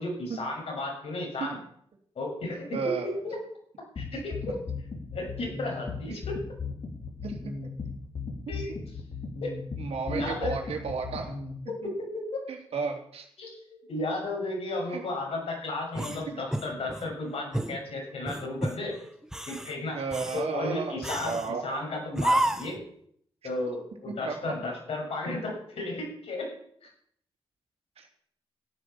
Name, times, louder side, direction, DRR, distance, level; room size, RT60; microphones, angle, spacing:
voice 1, 0.0-1.6 2.2-2.9 3.2-3.4 4.0-4.6 5.1-6.4 8.5-8.7 9.4-9.5 10.1-10.5 11.8-11.9 12.3-12.4 13.4-19.0 19.5-20.0 20.3-22.8 23.4-26.5 26.8-26.9, left 2 dB, 75° left, -1 dB, 6.8 m, -34 dB
voice 2, 2.7-3.1 7.2-7.5 9.8-11.4 11.8-11.9 12.5-13.3 14.9-15.0 16.3-16.4 19.9-21.0 21.2-21.7 24.1-24.6 28.0-28.1, right 5 dB, 75° right, 3 dB, 3.2 m, -33 dB
sound 1, 4.0-11.5, left 4 dB, 60° left, 3.5 m, -36 dB
sound 2, 15.9-17.1 17.5-17.8 18.3-18.8 19.2-19.7 20.1-20.5 21.0-21.5 22.2-22.8, right 1 dB, 5° right, 1.4 m, -30 dB
13.5 x 9.4 x 7.2 m, 0.66 s
cardioid pair, 70°, 10 cm